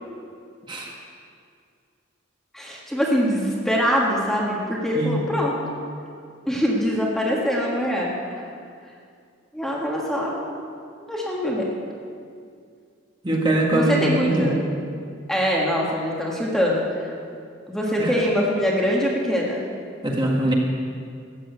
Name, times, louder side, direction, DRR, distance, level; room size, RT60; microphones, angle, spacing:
voice 1, 2.5-5.5 6.4-8.4 9.5-10.3 11.1-11.7 13.7-14.5 15.3-17.1 17.7-19.6, equal, ahead, -4 dB, 1.7 m, -23 dB
voice 2, 13.2-14.5 18.0-18.1 20.0-20.5, right 1 dB, 25° right, -1 dB, 1.8 m, -22 dB
14.0 x 9.1 x 8.2 m, 2.3 s
head